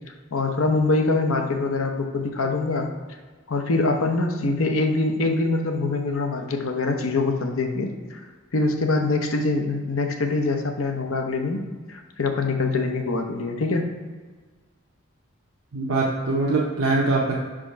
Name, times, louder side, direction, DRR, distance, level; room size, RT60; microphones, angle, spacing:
voice 1, 0.3-2.9 3.5-8.2 8.5-11.6 11.9-13.9, left 3 dB, 75° left, 4 dB, 0.8 m, -24 dB
voice 2, 15.7-17.4, right 3 dB, 70° right, -4 dB, 0.7 m, -23 dB
4.9 x 3.7 x 5.6 m, 1.4 s
head